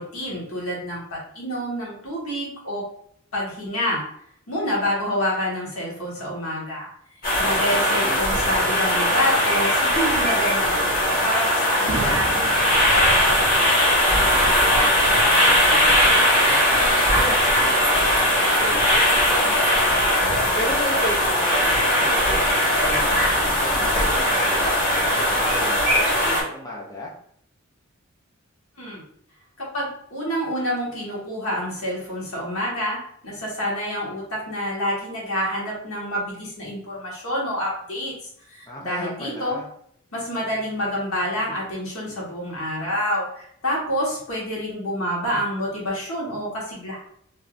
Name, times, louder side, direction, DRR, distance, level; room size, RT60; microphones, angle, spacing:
voice 1, 0.0-2.9 3.3-4.1 4.5-6.9 7.4-14.6 28.8-29.0 29.6-39.6 40.1-47.0, equal, 80° left, -5 dB, 1.4 m, -28 dB
sound 1, 7.2-26.4, equal, 45° left, 1.2 m, -19 dB
voice 2, 7.4-8.2 15.1-27.1 38.7-39.7, left 1 dB, 15° left, -3 dB, 0.5 m, -35 dB
Boom, 11.9-15.7, right 3 dB, 60° right, 0.5 m, -34 dB
3.4 x 2.6 x 2.5 m, 0.65 s
head